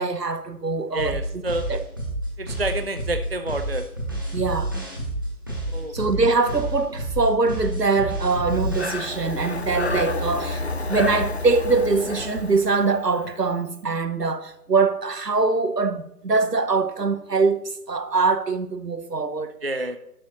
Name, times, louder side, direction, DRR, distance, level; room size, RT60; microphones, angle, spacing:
voice 1, 0.0-1.2 1.7-1.8 4.3-4.7 5.9-10.6 10.9-19.5, right 4 dB, 85° right, 1.1 m, -23 dB
voice 2, 0.9-1.7 2.4-3.9 5.7-6.0 19.6-20.0, right 1 dB, 40° right, 0.4 m, -28 dB
sound 1, 1.0-9.0, right 1 dB, 15° right, 0.9 m, -29 dB
Breathing, 8.4-13.4, left 2 dB, 45° left, 0.6 m, -30 dB
11.5 x 6.2 x 4.0 m
figure-of-eight pair, 155°, 47 cm